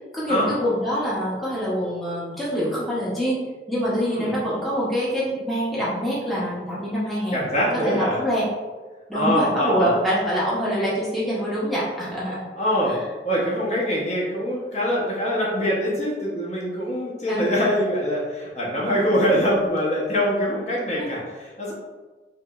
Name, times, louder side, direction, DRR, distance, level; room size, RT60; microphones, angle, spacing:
voice 1, 0.1-3.4 3.7-7.4 7.8-8.4 9.1-12.5 12.9-13.0 17.3-17.5 21.0-21.1, equal, ahead, -9 dB, 0.6 m, -25 dB
voice 2, 7.3-8.2 9.1-9.9 12.6-13.0 13.2-21.7, equal, 40° left, -5 dB, 0.7 m, -23 dB
2.9 x 2.8 x 2.3 m, 1.3 s
head